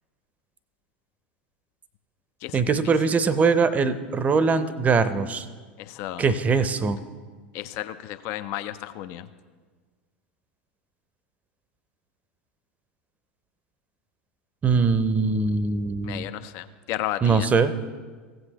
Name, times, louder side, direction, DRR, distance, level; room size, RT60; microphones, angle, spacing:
voice 1, 2.5-5.4 6.2-7.0 14.6-16.3 17.2-17.7, right 4 dB, 25° right, 14 dB, 0.6 m, -22 dB
voice 2, 5.8-6.3 7.5-9.3 16.0-17.5, left 13 dB, 50° left, 12 dB, 0.5 m, -33 dB
16.0 x 7.8 x 2.9 m, 1.5 s
figure-of-eight pair, 80°, 6 cm